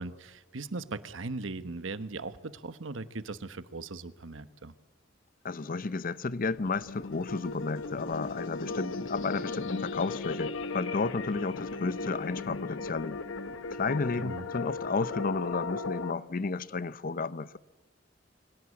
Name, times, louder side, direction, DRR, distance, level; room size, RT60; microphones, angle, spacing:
voice 1, 0.0-4.7 14.2-14.4, right 3 dB, 80° right, 1.1 m, -39 dB
voice 2, 5.4-13.2 13.8-17.6, left 4 dB, 45° left, 0.6 m, -32 dB
sound 1, 6.6-16.1, left 3 dB, 80° left, 1.0 m, -37 dB
24.0 x 17.5 x 8.6 m
head